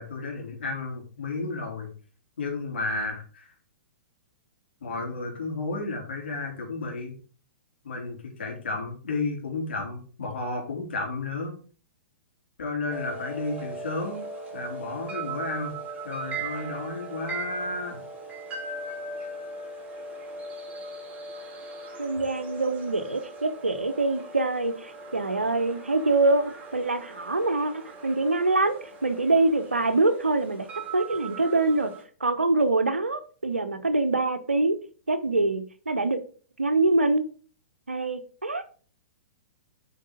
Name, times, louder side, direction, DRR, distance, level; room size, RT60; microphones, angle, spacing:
voice 1, 0.0-1.9 2.4-3.4 4.8-7.1 7.8-11.5 12.6-14.2 14.5-15.7 16.0-18.0, left 3 dB, 60° left, 3.3 m, -32 dB
sound 1, 12.9-32.0, right 3 dB, 20° right, 3.3 m, -39 dB
voice 2, 22.0-27.7 28.0-30.7 30.9-31.9 32.2-34.8 35.1-36.2 36.6-37.2 37.9-38.6, right 2 dB, 80° right, 1.1 m, -24 dB
7.5 x 5.2 x 5.1 m
figure-of-eight pair, 110°, 6 cm